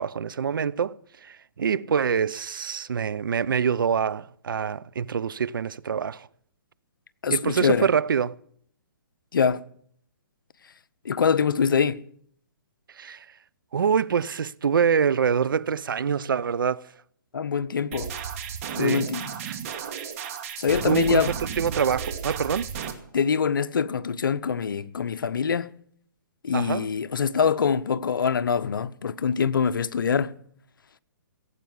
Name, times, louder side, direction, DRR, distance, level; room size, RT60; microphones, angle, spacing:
voice 1, 0.0-6.3 7.3-8.4 13.0-13.3 13.7-16.8 18.7-19.1 19.5-19.6 20.9-22.7 26.5-26.9, right 7 dB, 75° right, 0.6 m, -25 dB
voice 2, 7.2-7.9 9.3-9.6 11.0-12.0 17.3-18.1 18.7-19.3 20.6-21.3 23.1-25.7 26.4-30.3, left 6 dB, 75° left, 0.8 m, -24 dB
sound 1, 17.9-22.9, right 7 dB, 40° right, 2.3 m, -33 dB
17.0 x 8.3 x 9.4 m
hypercardioid pair, 140°, 11 cm